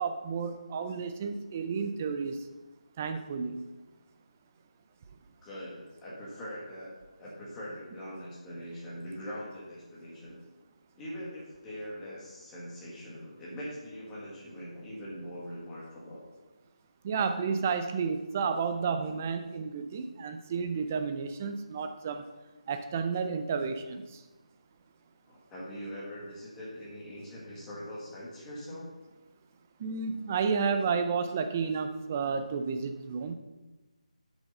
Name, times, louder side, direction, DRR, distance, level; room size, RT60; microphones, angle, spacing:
voice 1, 0.0-2.4 3.0-3.6 17.0-22.3 22.7-24.2 29.8-33.4, right 5 dB, 20° right, 8 dB, 0.4 m, -31 dB
voice 2, 5.4-10.4 10.9-16.2 25.3-28.9, equal, 10° left, -7 dB, 1.7 m, -42 dB
8.3 x 6.3 x 5.3 m, 1.2 s
figure-of-eight pair, 170°, 4 cm